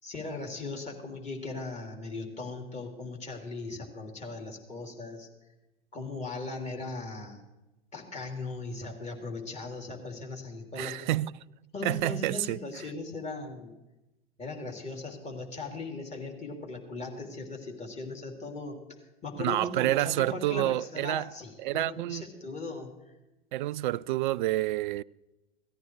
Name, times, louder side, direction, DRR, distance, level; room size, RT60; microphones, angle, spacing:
voice 1, 0.0-5.3 5.9-7.4 7.9-11.1 11.7-13.7 14.4-18.8 19.2-23.1, left 3 dB, 20° left, 3.2 m, -38 dB
voice 2, 10.8-11.4 11.8-12.6 19.4-21.3 21.6-22.2 23.5-25.0, right 15 dB, 55° right, 0.4 m, -28 dB
18.0 x 14.0 x 4.7 m
figure-of-eight pair, 90°, 31 cm